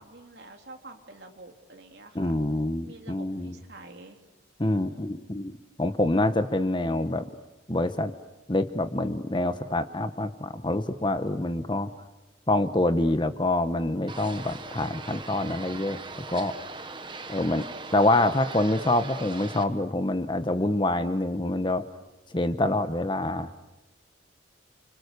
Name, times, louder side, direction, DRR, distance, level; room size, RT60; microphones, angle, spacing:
voice 1, 0.0-2.4 2.8-4.2 4.6-5.2, right 2 dB, 60° right, 3 dB, 3.4 m, -48 dB
voice 2, 2.1-3.6 4.6-5.5 5.8-7.2 7.7-8.1 8.5-11.9 12.5-16.0 16.3-16.5 17.3-17.7 17.9-21.8 22.3-23.5, left 1 dB, 25° left, 10 dB, 1.0 m, -26 dB
sound 1, 14.1-19.6, right 3 dB, 25° right, 1.3 m, -40 dB
29.5 x 26.0 x 6.8 m, 1.1 s
head